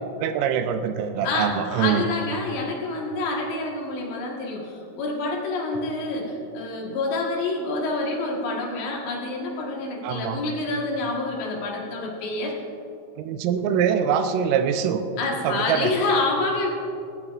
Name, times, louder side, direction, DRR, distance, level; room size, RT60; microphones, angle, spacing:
voice 1, 0.2-2.1 10.0-10.4 13.2-15.0 15.4-15.9, right 8 dB, 90° right, 8 dB, 3.4 m, -24 dB
voice 2, 1.2-12.6 15.2-16.7, left 3 dB, 70° left, -2 dB, 3.5 m, -27 dB
17.5 x 17.0 x 2.5 m, 2.8 s
omnidirectional pair, 5.7 m